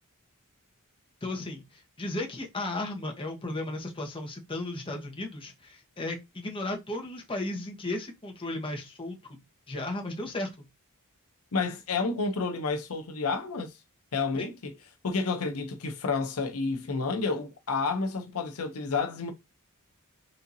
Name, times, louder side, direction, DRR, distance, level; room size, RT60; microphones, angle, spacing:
voice 1, 1.2-9.2 9.7-10.5 14.4-14.5, left 2 dB, 25° left, 1.1 m, -35 dB
voice 2, 11.5-13.7 14.1-14.7 15.0-19.3, left 4 dB, 70° left, 0.7 m, -30 dB
4.2 x 3.6 x 2.7 m
head